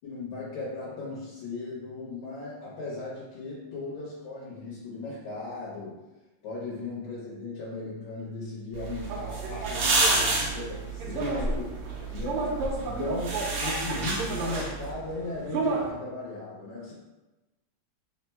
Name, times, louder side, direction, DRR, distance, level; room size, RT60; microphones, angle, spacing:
voice 1, 0.0-6.0 6.4-11.7 12.1-12.5 12.8-13.3 13.6-16.9, left 3 dB, 70° left, -6 dB, 1.6 m, -37 dB
sound 1, 8.7-14.9, right 2 dB, 70° right, 0.8 m, -30 dB
sound 2, 9.0-15.9, right 3 dB, 85° right, 1.5 m, -34 dB
3.9 x 2.1 x 4.3 m, 1.1 s
omnidirectional pair, 2.4 m